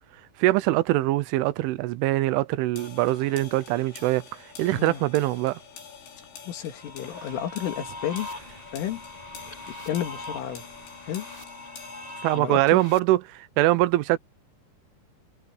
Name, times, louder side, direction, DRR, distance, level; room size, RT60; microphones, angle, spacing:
voice 1, 0.4-5.6 12.2-14.2, right 17 dB, 85° right, 3.3 m, -23 dB
sound 1, 2.8-12.4, left 7 dB, 65° left, 7.0 m, -46 dB
voice 2, 6.5-8.3 8.7-9.0 9.9-10.6 11.0-11.3 12.3-12.8, left 10 dB, 85° left, 4.9 m, -31 dB
sound 2, 6.8-13.0, left 2 dB, 5° left, 7.8 m, -41 dB
omnidirectional pair, 5.5 m